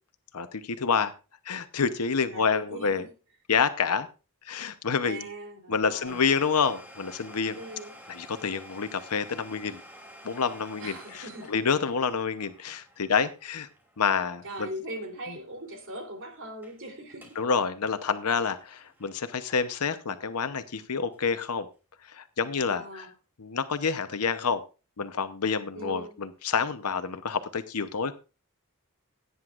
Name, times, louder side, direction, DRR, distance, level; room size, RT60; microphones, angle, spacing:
voice 1, 0.3-1.1 1.4-3.0 3.5-4.1 4.4-5.3 5.7-7.6 8.1-9.8 10.2-13.7 14.0-14.7 17.4-21.7 22.1-23.1 23.4-24.6 25.0-28.1, left 5 dB, 80° left, 0.8 m, -28 dB
voice 2, 2.2-3.1 5.0-6.2 7.5-7.9 10.8-11.5 14.4-17.3 22.6-23.1 25.7-26.2, right 1 dB, 60° right, 3.3 m, -40 dB
Domestic sounds home sounds, 6.1-15.5 15.7-15.8 16.4-16.8 17.1-17.5 17.8-19.9 20.4-20.5 21.1-21.2, equal, 10° right, 3.0 m, -51 dB
17.0 x 9.6 x 2.5 m
head